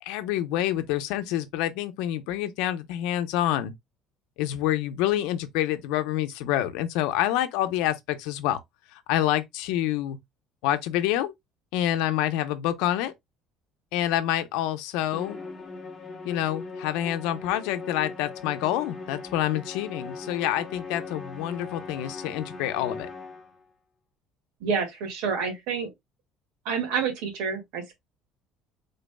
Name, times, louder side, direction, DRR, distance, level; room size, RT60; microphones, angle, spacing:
voice 1, 0.0-3.7 4.4-8.6 9.1-10.2 10.6-11.3 11.7-13.1 13.9-15.4 16.2-23.1, left 12 dB, 85° left, 0.7 m, -27 dB
Musical instrument, 15.1-23.6, left 3 dB, 20° left, 1.0 m, -39 dB
voice 2, 24.6-25.9 26.7-27.9, right 6 dB, 75° right, 2.0 m, -28 dB
5.2 x 3.9 x 2.2 m
cardioid pair, 175°, 0 cm